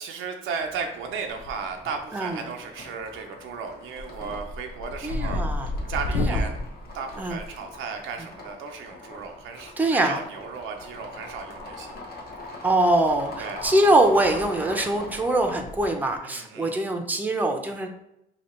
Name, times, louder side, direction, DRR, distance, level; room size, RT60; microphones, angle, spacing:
voice 1, 0.0-5.4 5.9-6.6 6.9-12.0 13.4-13.6 16.2-16.8, right 5 dB, 90° right, 3 dB, 0.6 m, -35 dB
sound 1, 0.6-16.2, left 2 dB, 50° left, 0.9 m, -43 dB
sound 2, 1.3-1.9 2.2-2.7 3.1-3.3 3.7-8.1 9.4-9.6 10.8-11.6 11.9-12.1 12.6-12.7 13.0-13.1 13.5-13.7 13.9-14.0 15.6-15.8, left 2 dB, 85° left, 0.5 m, -31 dB
voice 2, 5.0-5.7 6.1-6.4 7.2-7.4 9.8-10.2 12.6-17.9, right 1 dB, 10° right, 4 dB, 0.6 m, -23 dB
2.8 x 2.8 x 4.3 m, 0.82 s
cardioid pair, 90°, 20 cm